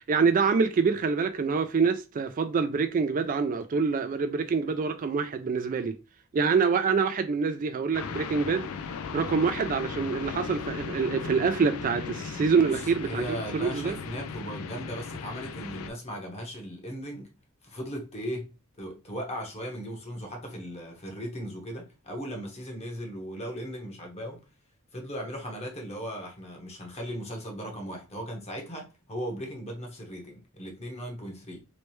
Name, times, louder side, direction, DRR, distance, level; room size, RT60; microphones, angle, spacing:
voice 1, 0.0-5.9 6.3-8.7 9.1-14.0, right 5 dB, 40° right, 0.3 m, -26 dB
sound 1, 7.9-15.9, left 6 dB, 80° left, 0.4 m, -37 dB
voice 2, 12.6-17.3 17.6-18.5 18.8-24.4 24.9-31.6, equal, 30° left, 1.0 m, -37 dB
3.2 x 3.1 x 3.1 m
head